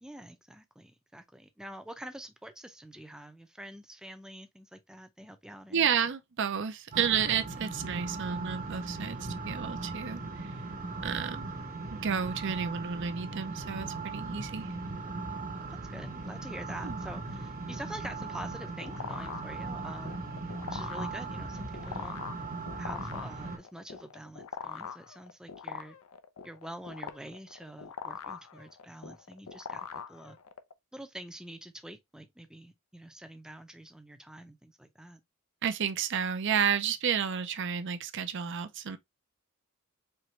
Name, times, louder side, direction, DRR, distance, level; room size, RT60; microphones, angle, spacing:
voice 1, 0.0-5.9 15.9-20.2 20.7-22.2 22.8-26.0 26.4-30.4 30.9-35.2, right 1 dB, 5° right, 0.6 m, -46 dB
voice 2, 5.7-10.5 11.0-11.5 11.9-14.7 16.8-17.0 35.6-39.0, right 7 dB, 55° right, 0.6 m, -31 dB
sound 1, 6.9-23.6, right 3 dB, 40° right, 0.9 m, -38 dB
sound 2, 18.3-30.7, left 6 dB, 85° left, 0.6 m, -42 dB
4.5 x 3.0 x 3.0 m
head